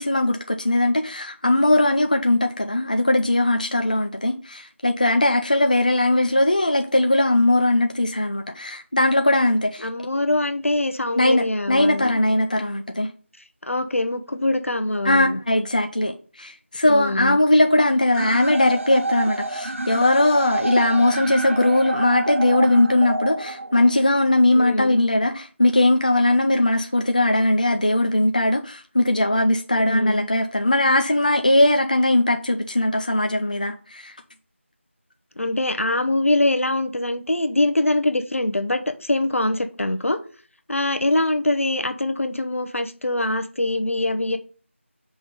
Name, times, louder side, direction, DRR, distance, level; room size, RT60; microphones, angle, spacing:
voice 1, 0.0-9.9 11.2-13.1 15.1-34.1, left 1 dB, 35° left, 0.4 m, -20 dB
voice 2, 9.8-12.2 13.6-15.4 16.9-17.4 24.5-25.0 29.8-30.2 35.4-40.2 40.7-44.4, left 1 dB, 80° left, 0.9 m, -23 dB
sound 1, 18.1-24.1, right 2 dB, 75° right, 0.8 m, -28 dB
5.1 x 3.5 x 5.5 m
figure-of-eight pair, 180°, 7 cm